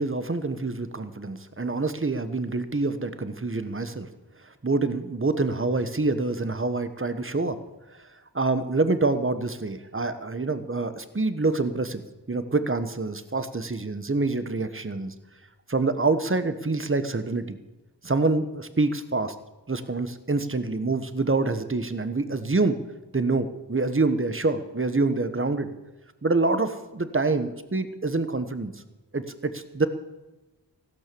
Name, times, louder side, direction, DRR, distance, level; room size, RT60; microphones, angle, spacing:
voice 1, 0.0-4.1 4.4-7.6 8.3-12.0 12.3-15.1 15.7-17.6 18.0-19.3 19.7-22.8 23.1-25.7 26.2-28.7 29.1-29.9, right 3 dB, 30° right, 11 dB, 1.2 m, -26 dB
15.5 x 12.0 x 7.0 m, 1.1 s
wide cardioid pair, 55°, 44 cm